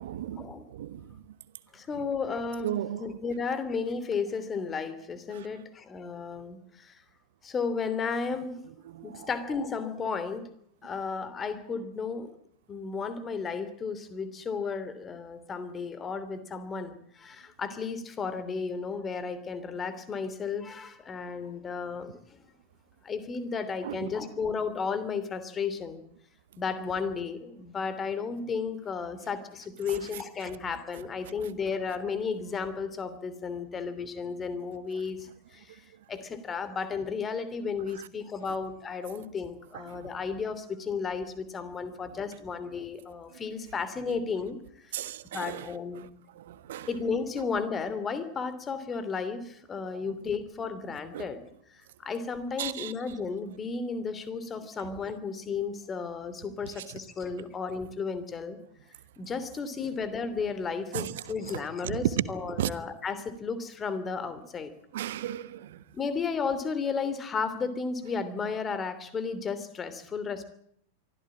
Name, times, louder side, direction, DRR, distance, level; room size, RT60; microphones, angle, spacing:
voice 1, 0.0-1.3 2.6-3.2 5.3-5.5 8.8-9.3 23.8-24.1 29.9-30.0 39.7-40.2 44.9-46.1 46.3-46.9 49.9-50.1 51.1-51.3 52.6-52.9 56.8-57.0 60.9-61.2 61.5-62.7 64.9-65.8, right 12 dB, 55° right, 1.3 m, -35 dB
voice 2, 1.7-6.9 7.4-8.6 9.0-10.5 10.8-12.3 12.7-22.1 23.0-26.0 26.6-35.2 35.5-35.8 36.1-44.6 45.3-46.1 46.9-51.4 52.0-58.6 59.2-64.7 66.0-70.4, left 5 dB, 20° left, 3.0 m, -33 dB
24.5 x 15.0 x 8.8 m
figure-of-eight pair, 90°, 0 cm